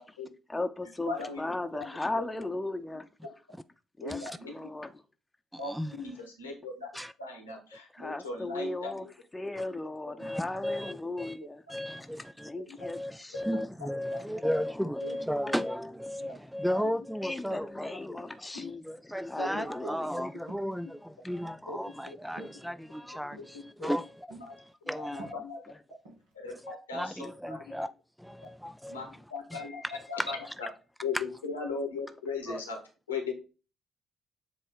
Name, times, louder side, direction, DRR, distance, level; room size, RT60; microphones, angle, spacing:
voice 1, 0.5-3.1 4.0-5.0 7.9-9.1 9.3-11.6 12.4-13.7 14.3-14.4 14.7-15.0 17.2-18.9 19.2-20.2 21.2-21.3 25.6-25.8 29.5-29.8, left 2 dB, 15° left, 0.8 m, -37 dB
voice 2, 1.1-1.4 1.7-2.2 4.0-4.5 5.6-6.9 7.2-9.1 10.2-10.3 12.7-12.8 13.5-14.3 15.0-15.2 18.5-18.7 19.4-20.1 21.7-21.8 22.1-22.2 23.4-23.5 23.8-24.0 24.3-24.5 24.8-25.1 25.3-25.6 26.3-27.8 28.9-29.7 30.1-30.7 31.0-32.8 33.1-33.3, left 4 dB, 85° left, 1.3 m, -38 dB
voice 3, 5.5-6.0 6.9-7.1 10.2-11.4 11.7-12.5 12.8-18.2 18.8-25.3 26.6-27.9 28.2-29.2 29.5-29.6 30.2-30.5 31.1-31.2 32.5-32.6, equal, ahead, 0.4 m, -35 dB
sound 1, 19.5-19.8 20.5-20.7 21.4-21.6 22.4-22.6 23.3-23.5 24.3-24.7 25.0-25.5 26.0-26.3, right 1 dB, 75° right, 2.0 m, -47 dB
7.5 x 3.1 x 4.9 m
figure-of-eight pair, 40°, 0 cm